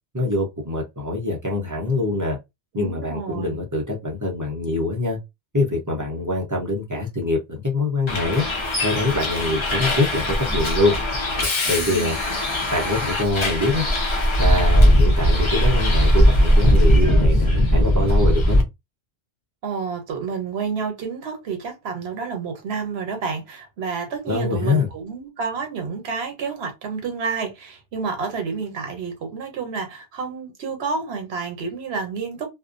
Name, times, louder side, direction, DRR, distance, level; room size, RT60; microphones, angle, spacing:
voice 1, 0.1-2.4 2.7-5.2 5.5-8.4 8.8-11.0 11.7-12.2 12.7-13.8 14.4-18.6 24.3-24.9, left 2 dB, 20° right, 0.5 m, -24 dB
voice 2, 2.7-3.6 11.8-12.4 19.6-32.5, right 5 dB, 75° right, 1.0 m, -30 dB
Bus, 8.1-18.6, equal, 35° left, 0.5 m, -19 dB
2.4 x 2.1 x 2.4 m
omnidirectional pair, 1.1 m